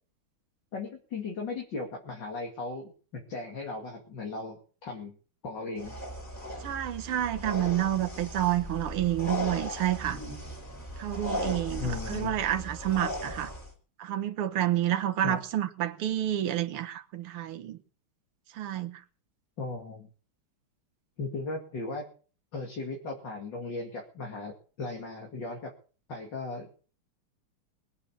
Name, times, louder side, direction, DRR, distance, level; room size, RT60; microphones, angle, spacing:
voice 1, 0.7-2.9 3.3-5.2 5.4-6.0 11.8-12.3 15.2-15.4 19.6-20.1 21.2-22.1 22.5-25.7 26.1-26.7, left 3 dB, 55° left, 3.0 m, -37 dB
sound 1, 5.8-13.7, left 1 dB, 20° left, 5.0 m, -37 dB
voice 2, 6.6-10.2 11.0-13.5 14.0-17.8 18.5-19.0, right 12 dB, 85° right, 2.0 m, -29 dB
20.5 x 8.4 x 7.1 m
omnidirectional pair, 2.3 m